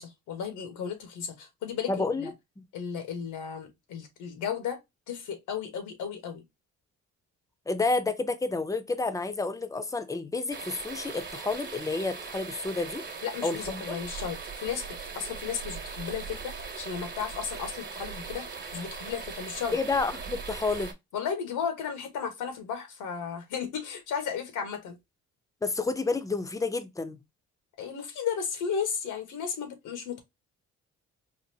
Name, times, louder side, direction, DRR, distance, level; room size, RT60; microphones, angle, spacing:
voice 1, 0.0-2.3 2.7-4.8 5.1-6.4 13.2-14.8 15.1-19.8 21.1-24.9 27.8-30.2, left 7 dB, 90° left, 1.3 m, -34 dB
voice 2, 1.9-2.3 2.6-2.7 7.7-13.0 13.4-14.0 19.7-20.9 25.6-27.2, left 3 dB, 10° left, 0.6 m, -30 dB
sound 1, 10.5-20.9, right 5 dB, 35° right, 1.2 m, -40 dB
4.1 x 2.5 x 2.7 m
cardioid pair, 90°, 30 cm